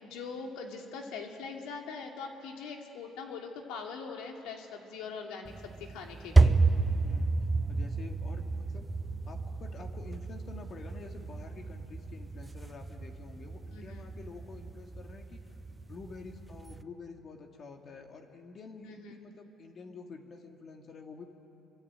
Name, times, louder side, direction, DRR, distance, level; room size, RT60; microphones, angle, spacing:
voice 1, 0.0-6.6 13.7-14.0 18.8-19.1, left 5 dB, 80° left, 2 dB, 2.8 m, -42 dB
sound 1, 5.4-16.8, right 3 dB, 15° right, 0.9 m, -31 dB
voice 2, 7.0-7.4 7.7-8.9 9.2-15.6 15.9-21.3, left 4 dB, 45° left, 3 dB, 2.5 m, -48 dB
26.5 x 24.0 x 9.1 m, 2.9 s
cardioid pair, 100°, 0 cm